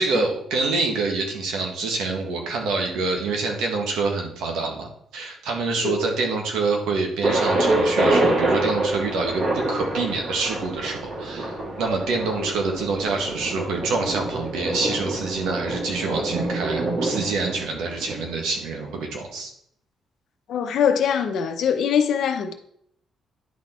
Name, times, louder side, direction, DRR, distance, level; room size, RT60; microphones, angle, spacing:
voice 1, 0.0-4.9 5.1-19.5, right 3 dB, 90° right, 1.6 m, -26 dB
Thunder, 7.2-19.0, right 2 dB, 55° right, 2.3 m, -26 dB
voice 2, 20.5-22.5, left 7 dB, 70° left, 0.9 m, -22 dB
10.5 x 4.1 x 4.4 m
cardioid pair, 90°, 0 cm